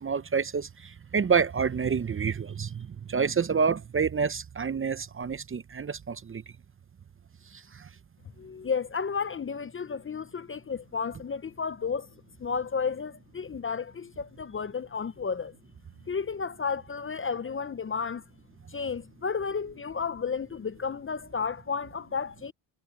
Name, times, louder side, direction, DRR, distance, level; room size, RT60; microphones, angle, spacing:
voice 1, 0.0-0.7 1.1-6.4, right 6 dB, 25° right, 0.7 m, -28 dB
voice 2, 8.4-12.1 12.4-15.5 16.1-18.2 18.7-22.5, left 5 dB, 25° left, 0.6 m, -32 dB
cardioid pair, 75°, 48 cm